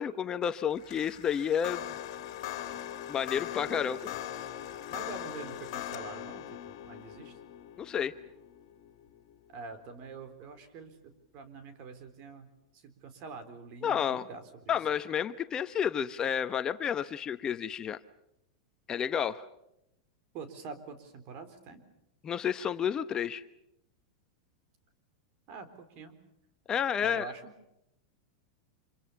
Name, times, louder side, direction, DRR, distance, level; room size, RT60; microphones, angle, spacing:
voice 1, 0.0-1.8 3.1-4.0 7.8-8.1 13.8-14.2 14.7-18.0 18.9-19.4 22.2-23.4 26.7-27.3, left 8 dB, 25° left, 11 dB, 0.9 m, -30 dB
sound 1, 0.7-10.1, left 11 dB, 60° left, 2.3 m, -41 dB
voice 2, 3.6-3.9 4.9-7.4 9.5-14.8 20.3-21.8 25.5-26.1 27.0-27.5, right 4 dB, 50° right, 9 dB, 4.0 m, -45 dB
26.5 x 24.5 x 7.0 m, 0.82 s
hypercardioid pair, 125°, 3 cm